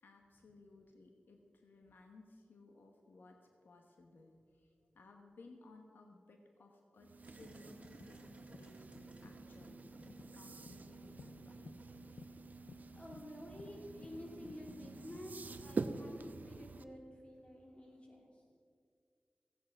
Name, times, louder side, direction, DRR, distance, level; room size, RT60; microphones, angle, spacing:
voice 1, 0.0-9.9 10.3-11.7, left 3 dB, 90° left, 3 dB, 1.1 m, -60 dB
sound 1, 7.0-16.8, right 4 dB, 60° right, 0.6 m, -47 dB
sound 2, 7.2-13.0, right 1 dB, 35° right, 1.8 m, -59 dB
sound 3, 7.7-16.6 17.4-17.5, left 4 dB, 65° left, 0.4 m, -58 dB
voice 2, 12.9-18.3, left 1 dB, 35° left, -1 dB, 3.1 m, -51 dB
15.5 x 9.0 x 5.8 m, 2.2 s
wide cardioid pair, 90°, 3 cm